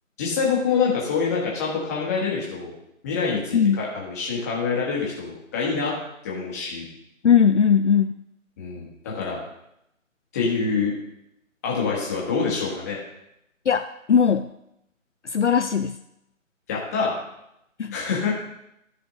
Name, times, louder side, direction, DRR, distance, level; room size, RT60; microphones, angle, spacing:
voice 1, 0.2-2.8 3.0-5.9 6.2-6.9 8.6-9.4 10.3-10.9 11.6-13.0 16.7-17.2 17.9-18.3, left 5 dB, 10° left, -4 dB, 1.4 m, -26 dB
voice 2, 7.2-8.2 13.7-14.5 15.3-16.0 17.8-17.9, left 7 dB, 60° left, 9 dB, 0.5 m, -19 dB
13.5 x 5.0 x 3.8 m, 0.81 s
figure-of-eight pair, 155°, 40 cm